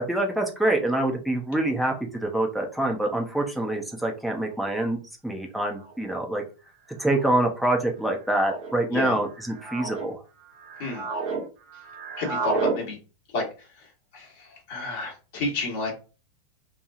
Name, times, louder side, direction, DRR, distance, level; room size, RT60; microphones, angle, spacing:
voice 1, 0.0-5.0 5.2-6.4 7.0-10.2, right 1 dB, ahead, 1 dB, 0.6 m, -25 dB
sound 1, 4.7-4.8 5.8-6.1 7.0-7.4 8.3-8.8 9.4-10.1 10.5-11.4 11.7-12.8, right 4 dB, 40° right, 0.6 m, -31 dB
voice 2, 12.2-13.0 13.3-16.0, left 3 dB, 50° left, -1 dB, 1.3 m, -31 dB
3.1 x 2.3 x 2.5 m, 0.34 s
figure-of-eight pair, 90°, 0 cm